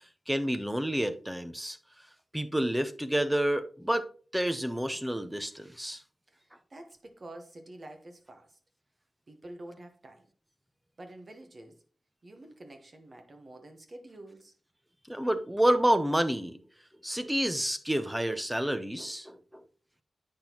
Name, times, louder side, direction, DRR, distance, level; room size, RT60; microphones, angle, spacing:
voice 1, 0.3-1.8 2.3-4.1 4.3-6.0 15.1-16.6 17.0-19.4, right 1 dB, 5° right, 0.6 m, -29 dB
voice 2, 6.7-8.6 9.3-10.3 11.0-11.8 12.2-14.5, right 1 dB, 35° right, 1.0 m, -48 dB
8.7 x 6.0 x 2.9 m
wide cardioid pair, 160°, 0 cm